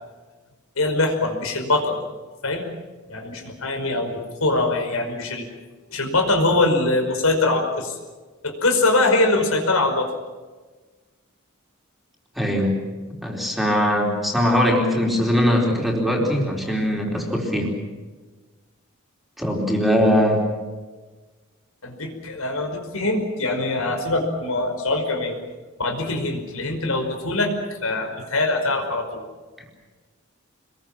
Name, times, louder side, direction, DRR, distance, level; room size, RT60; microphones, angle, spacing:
voice 1, 0.8-2.0 2.4-2.7 3.1-5.5 5.9-8.0 8.4-10.1 21.8-25.4 25.8-27.5 27.8-29.2, left 2 dB, 85° left, 4 dB, 5.3 m, -23 dB
voice 2, 12.4-12.9 13.2-17.8 19.4-20.5, equal, ahead, -1 dB, 4.4 m, -21 dB
26.5 x 22.0 x 7.5 m, 1.3 s
head